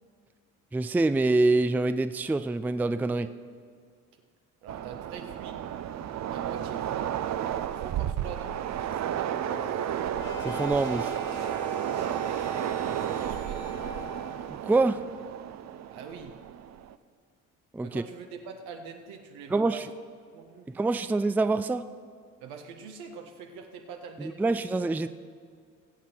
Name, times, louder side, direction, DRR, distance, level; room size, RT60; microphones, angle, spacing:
voice 1, 0.7-3.3 10.4-11.1 14.6-15.0 17.7-18.0 19.5-19.8 20.7-21.8 24.2-25.1, right 3 dB, 5° right, 11 dB, 0.4 m, -25 dB
voice 2, 4.6-5.6 6.3-7.2 7.7-8.6 8.9-9.7 12.1-13.8 15.9-16.4 17.8-20.0 20.3-20.7 22.4-24.6, right 6 dB, 80° right, 4 dB, 1.5 m, -44 dB
Train, 4.7-16.9, right 10 dB, 45° right, 0.6 m, -32 dB
sound 1, 9.4-14.5, equal, 75° left, 1.7 m, -41 dB
20.0 x 8.2 x 4.5 m, 2.1 s
supercardioid pair, 65°, 37 cm